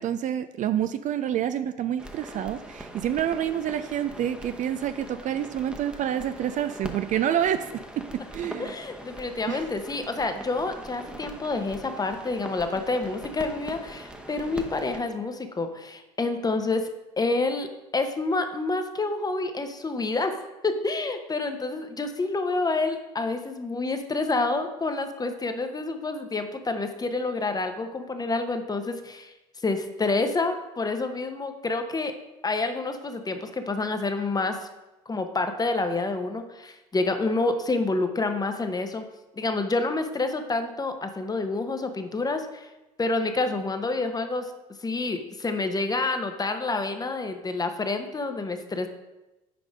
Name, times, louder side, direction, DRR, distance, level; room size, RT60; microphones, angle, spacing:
voice 1, 0.0-8.7 9.5-9.6, right 10 dB, 45° right, 11 dB, 0.4 m, -28 dB
sound 1, 2.0-15.0, right 1 dB, 5° right, 1.0 m, -42 dB
voice 2, 8.6-16.9 17.2-17.7 17.9-20.4 20.6-29.3 29.6-32.1 32.4-34.7 35.1-39.0 39.3-42.7 43.0-44.5 44.8-48.9, left 3 dB, 20° left, 7 dB, 0.8 m, -28 dB
6.0 x 4.7 x 5.1 m, 1.0 s
hypercardioid pair, 60°, 18 cm